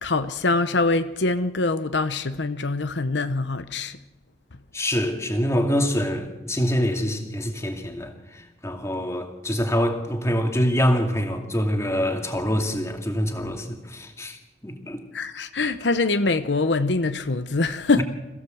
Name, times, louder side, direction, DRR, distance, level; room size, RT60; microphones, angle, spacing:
voice 1, 0.0-4.0 15.1-18.0, left 3 dB, 70° left, 10 dB, 0.9 m, -24 dB
voice 2, 4.7-15.0 18.0-18.1, equal, 15° left, 4 dB, 2.5 m, -25 dB
26.5 x 16.0 x 7.9 m, 1.1 s
head